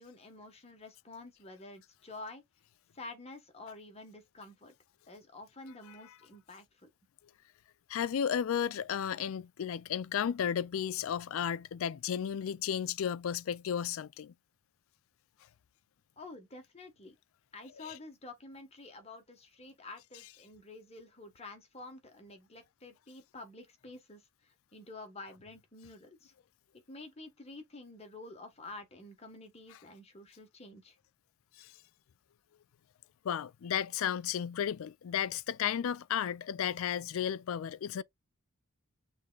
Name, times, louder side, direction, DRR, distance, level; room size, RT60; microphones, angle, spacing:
voice 1, 0.0-2.4 2.9-4.7 5.1-6.9 16.2-17.1 17.5-26.3 26.9-31.0, left 2 dB, 30° left, 1.3 m, -49 dB
voice 2, 7.9-14.3 17.8-18.0 31.6-31.7 33.2-38.0, left 8 dB, 65° left, 0.3 m, -33 dB
6.4 x 3.5 x 2.4 m
head